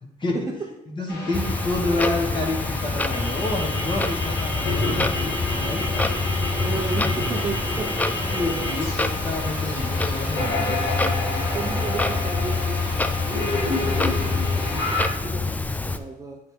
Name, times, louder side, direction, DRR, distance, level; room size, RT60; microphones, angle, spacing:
voice 1, 0.9-6.1 8.2-10.8, left 2 dB, 25° left, 1 dB, 1.4 m, -29 dB
sound 1, 1.1-15.0, left 2 dB, 75° left, 2.1 m, -29 dB
Clock, 1.3-16.0, left 3 dB, 10° left, 0.3 m, -26 dB
voice 2, 5.8-8.8 11.5-16.4, right 4 dB, 20° right, 0 dB, 0.7 m, -35 dB
8.7 x 3.5 x 4.5 m, 0.91 s
cardioid pair, 140°, 17 cm